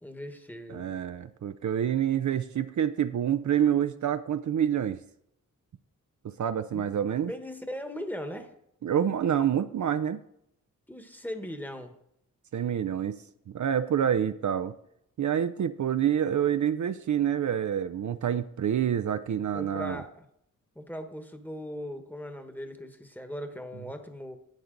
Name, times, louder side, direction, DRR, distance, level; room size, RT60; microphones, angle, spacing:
voice 1, 0.0-0.9 6.7-6.9 7.2-8.5 10.9-12.0 19.5-20.2 20.7-24.4, equal, 5° left, 7 dB, 1.3 m, -39 dB
voice 2, 0.7-5.0 6.4-7.3 8.8-10.2 12.5-13.2 13.5-14.7 15.2-20.0, right 9 dB, 60° right, 11 dB, 0.5 m, -27 dB
11.5 x 8.0 x 3.9 m, 0.75 s
cardioid pair, 75°, 33 cm